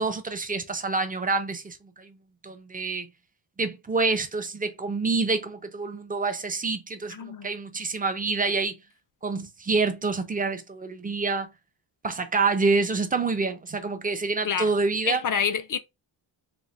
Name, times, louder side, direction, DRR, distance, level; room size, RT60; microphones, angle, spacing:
voice 1, 0.0-2.2 2.4-3.1 3.6-8.8 9.2-11.5 12.0-15.2, right 4 dB, 20° right, 0.4 m, -27 dB
voice 2, 7.1-7.5 14.4-14.7 15.1-15.8, left 7 dB, 40° left, 0.4 m, -27 dB
4.0 x 2.1 x 3.1 m
wide cardioid pair, 165°, 50 cm